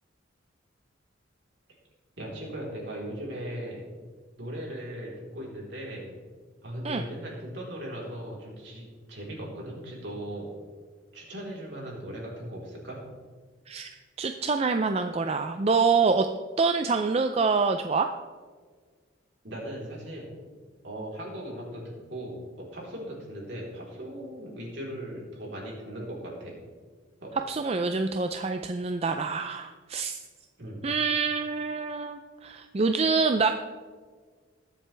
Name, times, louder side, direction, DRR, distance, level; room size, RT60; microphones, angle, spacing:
voice 1, 2.2-3.9 4.4-6.1 6.6-10.5 11.1-13.0 19.4-20.3 20.8-26.6 27.2-27.3 30.6-30.8, right 1 dB, 60° right, -3 dB, 3.8 m, -38 dB
voice 2, 14.2-16.3 16.6-18.1 27.5-30.2 30.8-33.5, right 4 dB, 30° right, 6 dB, 0.4 m, -26 dB
20.0 x 7.6 x 3.4 m, 1.5 s
head